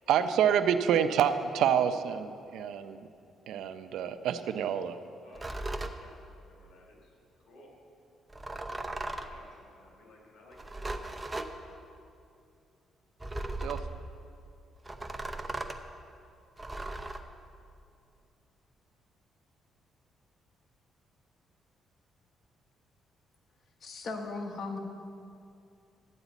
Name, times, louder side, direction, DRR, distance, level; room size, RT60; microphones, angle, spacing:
voice 1, 0.1-3.0 3.5-5.0 13.6-13.8, right 8 dB, 80° right, 10 dB, 0.5 m, -27 dB
voice 2, 5.2-5.7 6.0-7.1 7.4-7.7 8.8-11.2, left 2 dB, 75° left, -1 dB, 2.8 m, -57 dB
sound 1, 5.3-6.0 8.3-9.4 10.5-11.5 13.2-13.9 14.8-15.8 16.6-17.2, right 2 dB, 20° right, 0.7 m, -37 dB
voice 3, 23.8-24.8, left 3 dB, 55° left, 3 dB, 1.3 m, -37 dB
12.5 x 9.0 x 4.1 m, 2.5 s
cardioid pair, 90°, 0 cm